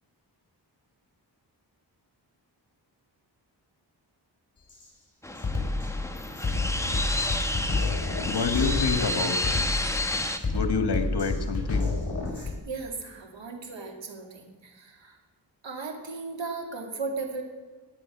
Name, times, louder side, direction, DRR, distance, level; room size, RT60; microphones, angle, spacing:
Drum kit, 4.7-4.9 5.4-12.5, left 3 dB, 35° left, 4.4 m, -29 dB
sound 1, 5.2-10.4, left 1 dB, 5° left, 1.1 m, -30 dB
voice 1, 8.3-9.7 10.5-11.9, left 4 dB, 60° left, 8 dB, 1.6 m, -28 dB
voice 2, 12.4-15.2 15.6-17.4, right 4 dB, 80° right, 3 dB, 2.4 m, -36 dB
17.0 x 9.9 x 6.1 m, 1.3 s
wide cardioid pair, 85°, 44 cm